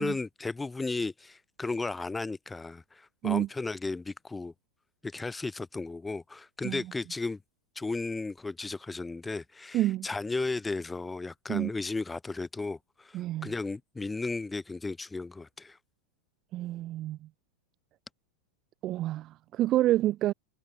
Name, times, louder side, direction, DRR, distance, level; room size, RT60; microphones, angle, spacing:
voice 1, 0.0-4.5 5.0-7.4 7.8-15.8, left 3 dB, 10° left, 1.1 m, -35 dB
voice 2, 9.7-10.1 11.5-11.7 13.1-13.5 16.5-17.2 18.8-20.3, right 14 dB, 35° right, 0.3 m, -28 dB
figure-of-eight pair, 90°, 0 cm